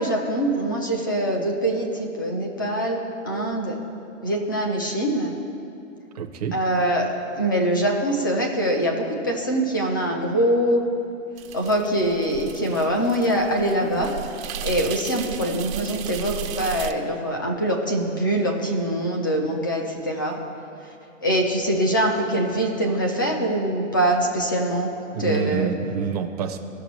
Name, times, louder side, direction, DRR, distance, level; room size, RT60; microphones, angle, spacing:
voice 1, 0.0-3.8 4.2-5.3 6.5-10.8 11.5-14.2 14.6-20.4 21.2-24.9 25.2-25.7, right 1 dB, 15° left, 1 dB, 0.4 m, -23 dB
voice 2, 6.1-6.6 25.1-26.6, right 6 dB, 30° right, 2 dB, 0.6 m, -27 dB
sound 1, 11.4-16.9, right 9 dB, 90° right, 0.9 m, -35 dB
17.5 x 6.5 x 3.0 m, 2.8 s
hypercardioid pair, 175°, 40 cm